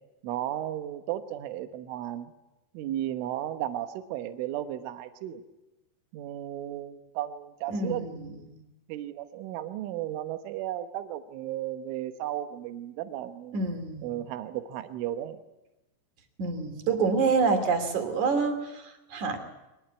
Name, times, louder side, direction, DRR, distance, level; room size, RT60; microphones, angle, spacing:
voice 1, 0.2-2.3 2.8-5.4 6.1-8.5 8.9-13.6 14.0-15.4, right 12 dB, 80° right, 8 dB, 3.6 m, -34 dB
voice 2, 7.7-8.3 13.5-14.1 16.4-19.4, right 4 dB, 45° right, 7 dB, 3.5 m, -27 dB
23.5 x 20.0 x 9.5 m, 0.97 s
omnidirectional pair, 5.6 m